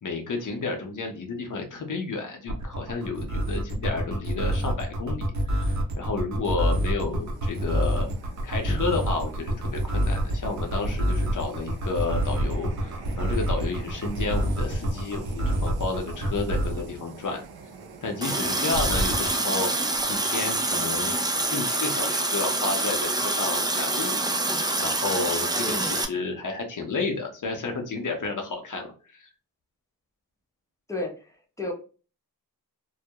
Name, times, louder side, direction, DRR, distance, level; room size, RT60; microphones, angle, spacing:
voice 1, 0.0-8.1 8.4-17.4 18.0-21.2 21.5-24.2 24.5-29.3, left 3 dB, 55° left, 3 dB, 0.7 m, -31 dB
sound 1, 2.5-16.9 18.7-19.3, right 1 dB, 50° right, 0.8 m, -27 dB
sound 2, 6.9-22.3, right 5 dB, 90° right, 0.5 m, -46 dB
Water tap faucet, 18.2-26.0, right 2 dB, 10° right, 0.3 m, -26 dB
voice 2, 25.6-26.0 30.9-31.7, left 2 dB, 10° left, 1 dB, 0.7 m, -33 dB
2.3 x 2.1 x 2.7 m, 0.36 s
cardioid pair, 60°, 37 cm